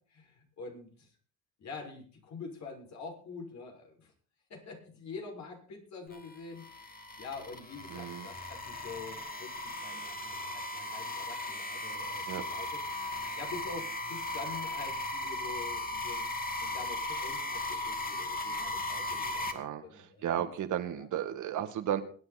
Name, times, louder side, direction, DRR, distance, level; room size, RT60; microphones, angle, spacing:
voice 1, 0.1-1.1 1.6-4.1 4.5-12.8 13.4-16.3 16.6-20.5 21.0-21.1, left 4 dB, 65° left, 1 dB, 6.2 m, -46 dB
sound 1, 6.1-19.5, left 2 dB, 30° left, 2.6 m, -37 dB
voice 2, 7.9-8.3 12.3-12.4 19.5-22.0, right 10 dB, 80° right, 8 dB, 2.1 m, -34 dB
22.5 x 9.9 x 4.3 m, 0.42 s
cardioid pair, 90°, 30 cm